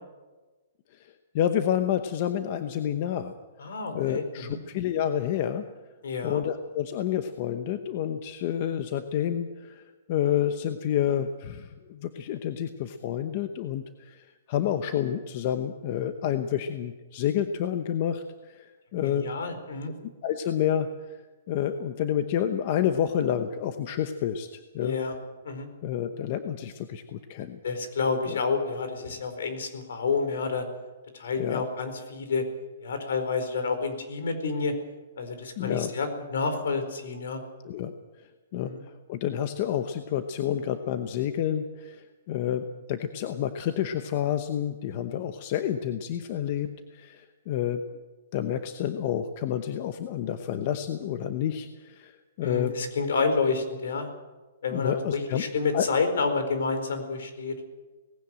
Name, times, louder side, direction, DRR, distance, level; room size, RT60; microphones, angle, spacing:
voice 1, 1.3-3.3 3.9-5.6 6.2-19.3 20.2-20.9 21.5-25.0 25.8-27.6 28.3-28.4 31.4-31.6 35.6-35.9 37.6-37.9 38.5-38.7 39.1-47.8 48.3-52.7 54.7-55.4 55.7-55.9, left 10 dB, 35° left, 9 dB, 0.9 m, -29 dB
voice 2, 3.6-4.6 6.0-6.4 19.0-19.9 24.8-25.2 25.4-25.7 27.6-30.7 31.1-32.4 32.8-34.7 35.2-37.4 38.5-38.8 52.4-54.1 54.6-57.5, left 4 dB, 70° left, 7 dB, 4.4 m, -29 dB
19.0 x 16.5 x 8.9 m, 1.2 s
hypercardioid pair, 170°, 0 cm